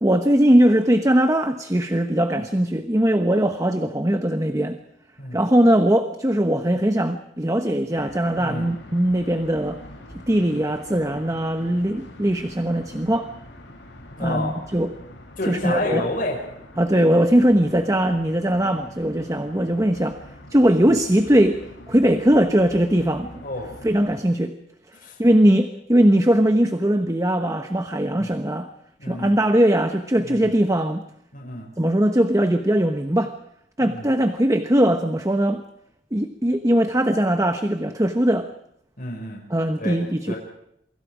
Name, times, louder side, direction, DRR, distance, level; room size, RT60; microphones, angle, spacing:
voice 1, 0.0-4.8 5.3-9.8 10.3-13.3 14.2-14.9 15.5-16.0 16.8-20.2 20.5-23.4 23.8-24.5 25.2-28.7 29.1-31.0 31.8-33.3 33.8-35.6 36.1-38.5 39.5-40.3, right 1 dB, 20° right, 8 dB, 1.0 m, -20 dB
sound 1, 7.9-24.2, left 1 dB, 70° left, 7.2 m, -44 dB
voice 2, 8.4-8.7 14.1-14.5 15.4-16.4 20.9-21.0 23.4-23.7 24.9-25.2 28.0-28.3 29.0-29.4 30.2-30.5 31.3-31.7 33.8-34.1 39.0-39.4 39.8-40.0 40.3-40.4, left 1 dB, 50° left, 0 dB, 6.1 m, -30 dB
28.0 x 24.0 x 5.0 m, 0.73 s
head